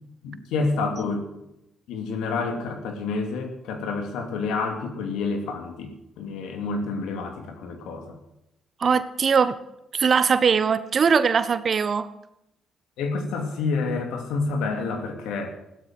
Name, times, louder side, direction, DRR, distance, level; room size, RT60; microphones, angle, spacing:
voice 1, 0.2-1.3 1.9-8.1 13.0-15.6, left 4 dB, 75° left, 5 dB, 2.7 m, -28 dB
voice 2, 8.8-9.6 9.9-12.1, right 6 dB, 50° right, 14 dB, 1.1 m, -21 dB
16.0 x 12.5 x 6.2 m, 0.85 s
hypercardioid pair, 50°, 0 cm